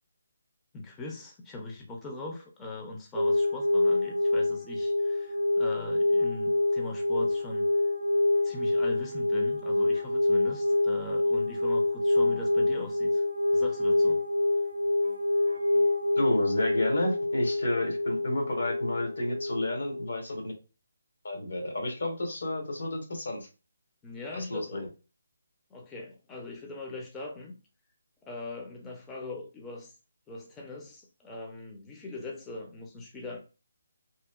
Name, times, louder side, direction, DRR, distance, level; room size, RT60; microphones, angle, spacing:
voice 1, 0.7-7.7 8.4-13.2 13.5-14.2 24.0-24.9 25.7-27.5 28.3-29.9 30.3-33.4, left 2 dB, 10° left, -1 dB, 0.4 m, -40 dB
sound 1, 3.1-20.1, left 2 dB, 90° right, 0.3 m, -26 dB
voice 2, 16.2-20.4 21.2-23.5 24.3-24.9, left 1 dB, 70° left, 2 dB, 1.0 m, -31 dB
2.7 x 2.2 x 2.3 m, 0.32 s
figure-of-eight pair, 155°, 0 cm